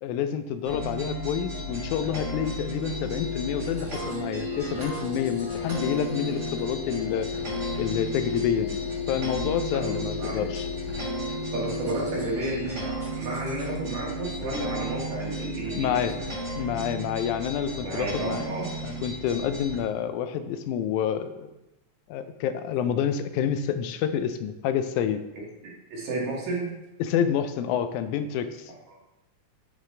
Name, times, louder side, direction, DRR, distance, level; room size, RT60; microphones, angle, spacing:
voice 1, 0.0-7.3 7.8-8.8 9.1-10.7 15.8-16.2 16.6-18.5 18.8-21.5 22.1-25.2 27.0-28.7, left 8 dB, 90° left, 10 dB, 2.0 m, -28 dB
sound 1, 0.6-19.8, right 1 dB, 30° right, 1.6 m, -34 dB
sound 2, 2.8-12.6, left 5 dB, 65° left, 2.1 m, -35 dB
voice 2, 9.7-10.5 11.5-16.0 17.8-18.7 25.9-26.7 28.9-29.0, right 2 dB, 75° right, -4 dB, 3.2 m, -32 dB
9.1 x 5.0 x 3.2 m, 0.96 s
omnidirectional pair, 3.4 m